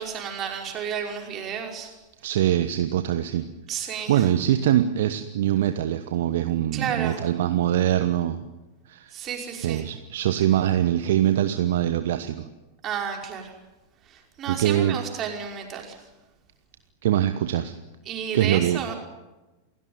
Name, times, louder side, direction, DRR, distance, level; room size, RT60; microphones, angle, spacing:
voice 1, 0.0-1.9 3.7-4.2 6.7-7.2 9.1-9.8 12.8-13.5 14.1-16.0 18.1-18.9, right 7 dB, 30° right, 2 dB, 5.5 m, -32 dB
voice 2, 2.2-3.5 3.7-8.5 8.9-9.2 9.6-12.5 14.5-15.0 17.0-17.7 18.3-18.8, right 11 dB, 55° right, 10 dB, 1.2 m, -23 dB
28.5 x 17.0 x 9.8 m, 1.1 s
figure-of-eight pair, 90°, 0 cm